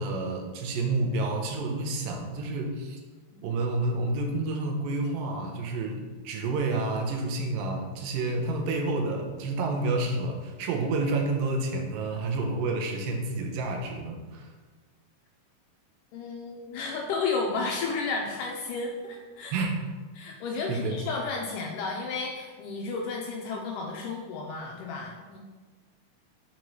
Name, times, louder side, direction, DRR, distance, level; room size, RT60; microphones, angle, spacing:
voice 1, 0.0-3.0 3.4-14.5 19.5-19.8 20.7-21.0, right 2 dB, 80° right, 3 dB, 2.5 m, -29 dB
voice 2, 16.1-19.5 20.2-25.4, left 4 dB, 80° left, 0 dB, 1.9 m, -32 dB
6.2 x 3.0 x 5.3 m, 1.4 s
omnidirectional pair, 4.1 m